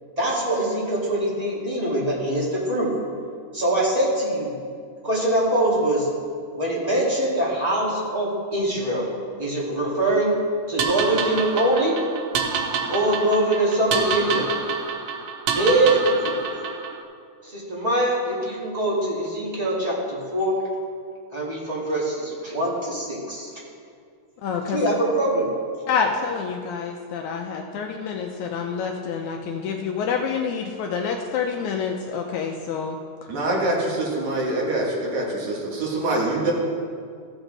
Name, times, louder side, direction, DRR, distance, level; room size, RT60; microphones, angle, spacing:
voice 1, 0.2-2.9 3.5-4.5 5.0-6.1 6.6-9.1 9.4-10.3 10.7-11.9 12.9-14.5 15.5-16.4 17.4-20.6 21.3-23.5 24.7-25.5, right 1 dB, 15° right, -6 dB, 1.3 m, -23 dB
sound 1, 10.8-17.0, right 6 dB, 80° right, 1.5 m, -27 dB
voice 2, 24.4-24.8 25.9-33.0, left 6 dB, 75° left, 2 dB, 1.8 m, -27 dB
voice 3, 33.3-35.2 35.7-36.5, right 2 dB, 65° right, -2 dB, 2.7 m, -24 dB
14.5 x 7.1 x 3.9 m, 2.2 s
omnidirectional pair, 3.7 m